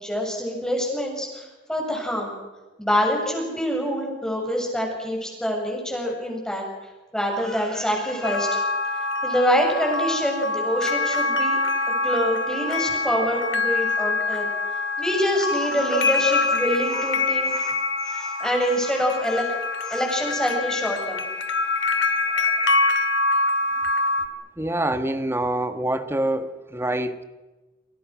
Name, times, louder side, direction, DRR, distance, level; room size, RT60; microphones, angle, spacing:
voice 1, 0.0-2.4 2.8-6.6 7.1-8.7 9.2-11.6 12.0-14.5 15.0-19.5 19.8-21.2 22.3-22.5, equal, 5° left, 0 dB, 7.7 m, -26 dB
sound 1, 8.2-24.3, left 3 dB, 80° left, 2.2 m, -25 dB
voice 2, 24.6-27.2, right 1 dB, 15° right, 10 dB, 1.5 m, -26 dB
28.5 x 26.5 x 6.2 m, 1.2 s
head